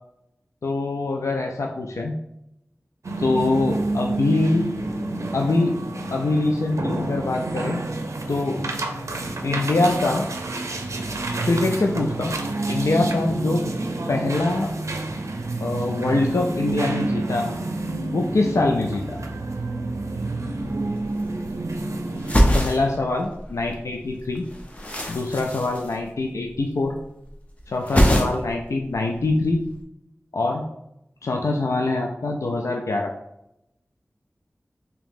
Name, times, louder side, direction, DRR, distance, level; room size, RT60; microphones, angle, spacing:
voice 1, 0.6-2.1 3.2-4.7 5.3-5.8 6.1-7.8 8.3-8.6 9.4-10.3 11.4-12.4 12.7-13.6 14.1-14.7 15.6-17.5 18.1-19.2 22.5-24.5 25.1-27.0 27.7-29.6 30.3-30.6 31.2-33.1, left 2 dB, 85° left, 2 dB, 0.4 m, -23 dB
sound 1, 3.0-22.4, right 2 dB, 85° right, 0.5 m, -29 dB
sound 2, 20.6-20.7 20.9-21.8 22.1-23.8 24.0-26.6 26.8-27.3 27.6-28.6 28.9-29.7, equal, 25° left, 0.7 m, -23 dB
3.5 x 2.9 x 3.6 m, 0.83 s
wide cardioid pair, 60°, 5 cm